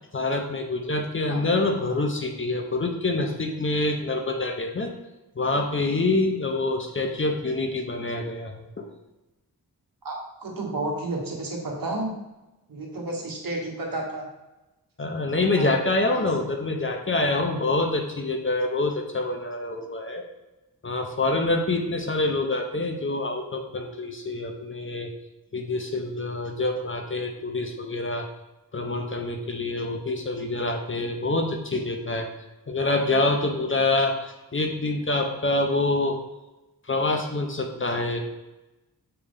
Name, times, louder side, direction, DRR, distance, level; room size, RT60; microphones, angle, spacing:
voice 1, 0.1-4.9 5.4-8.8 15.0-20.2 20.8-25.1 25.5-28.3 28.7-32.3 32.7-36.2 36.9-38.2, left 2 dB, 35° left, 3 dB, 0.7 m, -26 dB
voice 2, 10.0-12.1 12.7-14.3 15.6-15.7 16.1-16.3, right 2 dB, 65° right, 0 dB, 1.3 m, -31 dB
6.8 x 3.8 x 3.7 m, 1.0 s
wide cardioid pair, 135°, 36 cm